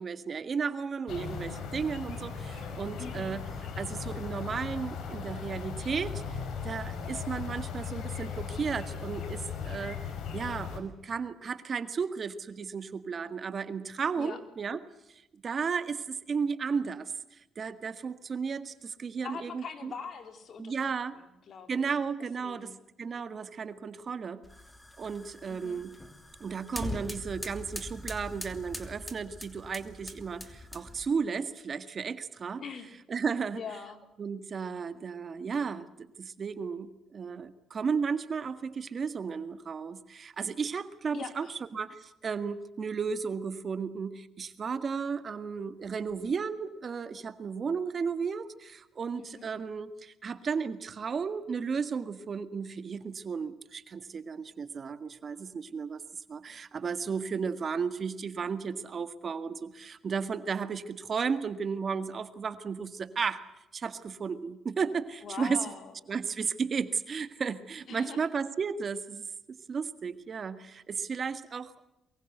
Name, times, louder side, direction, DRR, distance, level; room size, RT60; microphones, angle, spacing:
voice 1, 0.0-3.4 3.8-6.4 6.6-10.0 10.3-14.8 15.1-19.9 20.6-21.1 21.7-22.7 23.0-24.4 25.0-26.0 26.4-32.6 33.1-33.6 34.2-41.5 41.7-56.0 56.3-63.4 63.7-65.6 66.1-71.7, right 5 dB, 45° right, 12 dB, 1.8 m, -34 dB
sound 1, 1.1-10.8, left 6 dB, 75° left, 5.4 m, -38 dB
voice 2, 3.0-3.4 14.2-14.4 19.2-21.9 22.4-22.8 25.5-25.8 32.6-32.9 33.5-34.0 41.1-41.5 49.1-49.5 65.2-65.9 67.9-68.3, left 6 dB, 60° left, 8 dB, 3.9 m, -42 dB
sound 2, 24.4-31.1, left 1 dB, 10° left, 3.0 m, -42 dB
23.5 x 23.0 x 8.0 m, 0.87 s
cardioid pair, 90°, 0 cm